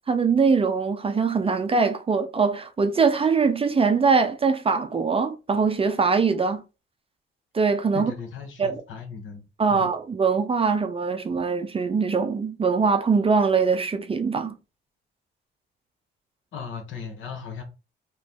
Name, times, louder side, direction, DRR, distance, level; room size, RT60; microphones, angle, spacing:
voice 1, 0.1-6.6 7.5-8.1 8.6-8.8 9.6-14.5, right 5 dB, 30° right, 0.5 m, -22 dB
voice 2, 7.9-9.4 9.7-9.9 16.5-17.6, left 6 dB, 80° left, 1.2 m, -37 dB
3.0 x 2.6 x 3.6 m
cardioid pair, 90°, 20 cm